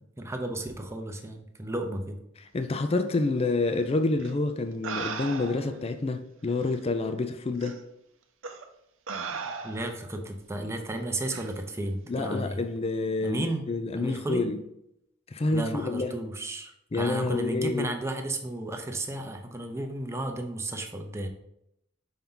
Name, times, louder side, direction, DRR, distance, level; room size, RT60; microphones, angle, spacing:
voice 1, 0.2-2.2 9.6-12.6 13.2-13.6 14.0-14.4 15.5-21.3, right 1 dB, 15° right, 4 dB, 0.7 m, -33 dB
voice 2, 2.5-7.8 12.1-14.6 15.3-16.1 16.9-18.0, left 3 dB, 30° left, 8 dB, 0.4 m, -28 dB
sound 1, 4.2-4.3 4.8-5.8 6.7-6.8 7.6-7.8 8.4-8.6 9.1-10.0 11.3-11.5, right 5 dB, 70° right, 0.6 m, -36 dB
5.5 x 4.5 x 3.8 m, 0.79 s
head